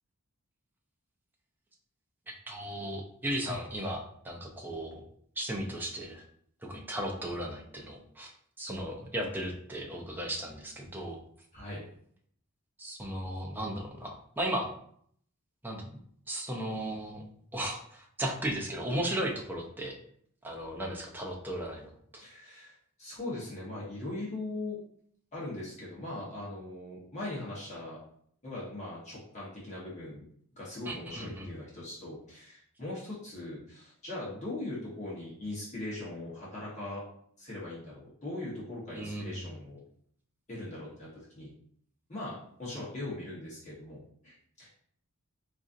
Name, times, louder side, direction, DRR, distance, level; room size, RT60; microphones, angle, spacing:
voice 1, 2.5-5.0 5.4-6.2 6.7-8.3 8.6-11.2 12.8-14.7 15.6-15.9 16.3-17.2 17.5-20.0 20.4-22.2 30.9-31.5 38.9-39.3, right 1 dB, 10° right, -1 dB, 0.5 m, -36 dB
voice 2, 22.2-22.7 23.0-24.8 25.3-28.0 28.4-30.2 30.6-37.0 37.4-39.8 40.5-41.5 42.1-44.7, left 2 dB, 30° left, -7 dB, 1.1 m, -40 dB
4.0 x 2.6 x 2.5 m, 0.64 s
head